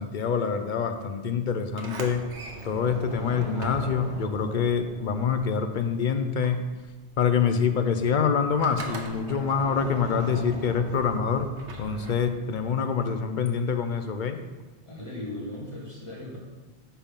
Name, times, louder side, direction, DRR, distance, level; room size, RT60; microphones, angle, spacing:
voice 1, 0.0-2.2 2.6-6.6 7.2-11.5 11.8-14.4, left 6 dB, 55° left, 8 dB, 0.6 m, -26 dB
Sliding door, 1.7-5.9 6.2-12.6, right 2 dB, 90° right, 1.2 m, -40 dB
sound 1, 1.8-5.8, right 3 dB, 60° right, 1.5 m, -51 dB
voice 2, 14.9-16.4, left 1 dB, 25° left, -6 dB, 2.0 m, -37 dB
7.1 x 4.5 x 5.2 m, 1.2 s
omnidirectional pair, 1.2 m